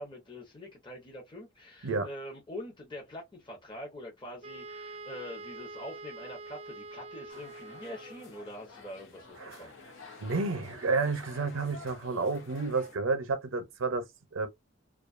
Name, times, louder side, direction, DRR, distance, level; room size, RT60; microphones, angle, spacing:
voice 1, 0.0-9.7, left 1 dB, 25° left, 0.8 m, -44 dB
Wind instrument woodwind instrument, 4.4-8.4, right 3 dB, 30° right, 0.4 m, -45 dB
sound 1, 7.3-13.0, left 3 dB, 70° left, 0.8 m, -50 dB
voice 2, 10.2-14.1 14.3-14.5, right 4 dB, 75° right, 0.6 m, -30 dB
2.6 x 2.3 x 2.4 m
head